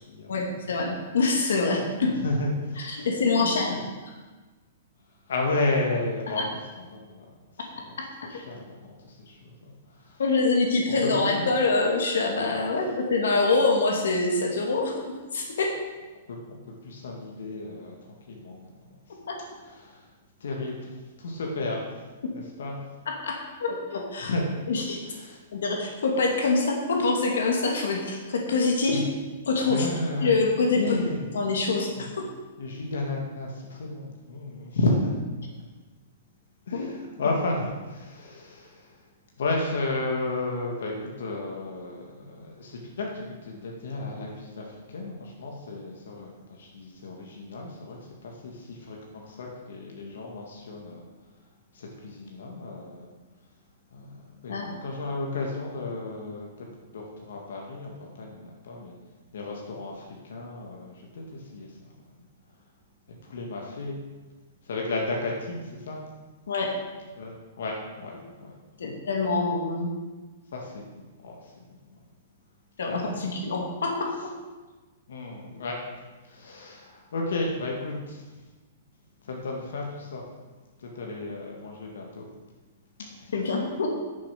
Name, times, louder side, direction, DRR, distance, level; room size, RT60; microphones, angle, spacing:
voice 1, 0.3-2.2 2.8-3.8 6.4-6.5 8.0-8.1 10.2-15.0 15.3-15.7 19.3-19.4 23.2-24.3 24.7-25.0 25.5-29.0 29.5-29.9 30.2-31.0 31.3-32.3 36.7-36.8 54.5-54.7 66.5-66.7 68.8-69.9 72.8-74.3 83.3-83.9, left 3 dB, 85° left, 1 dB, 2.2 m, -25 dB
voice 2, 2.2-3.1 3.4-3.8 5.3-6.4 6.9-7.3 7.8-7.9 8.3-10.2 11.0-11.5 16.3-16.4 16.8-17.9 18.3-18.8 19.6-20.1 20.4-21.8 22.3-22.8 24.2-24.4 25.1-25.4 28.9-29.0 29.7-30.3 30.7-31.3 32.0-32.1 32.6-35.1 36.7-38.9 39.4-51.0 51.7-53.1 53.9-54.5 54.8-56.5 56.9-58.9 59.3-61.7 63.3-64.0 64.7-66.0 67.2-68.5 68.8-68.9 70.5-70.8 71.2-71.5 73.1-73.3 75.1-75.8 76.3-78.2 79.2-80.2 80.8-82.3 83.2-83.3, left 2 dB, 70° left, -1 dB, 2.1 m, -33 dB
10.0 x 6.9 x 6.0 m, 1.3 s
hypercardioid pair, 180°, 0 cm